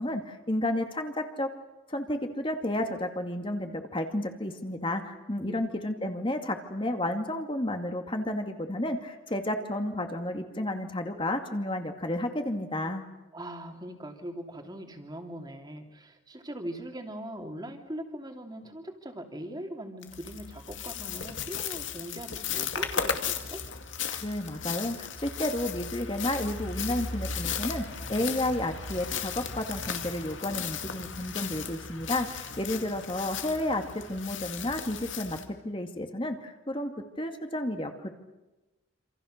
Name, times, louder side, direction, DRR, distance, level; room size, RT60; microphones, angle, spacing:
voice 1, 0.0-1.5 1.9-13.0 24.2-36.9 37.2-38.1, left 1 dB, 25° left, 5 dB, 2.3 m, -31 dB
voice 2, 13.3-23.6, right 1 dB, 20° right, 4 dB, 3.0 m, -41 dB
sound 1, 20.0-35.4, left 6 dB, 65° left, 2.5 m, -36 dB
28.0 x 27.0 x 6.7 m, 1.0 s
head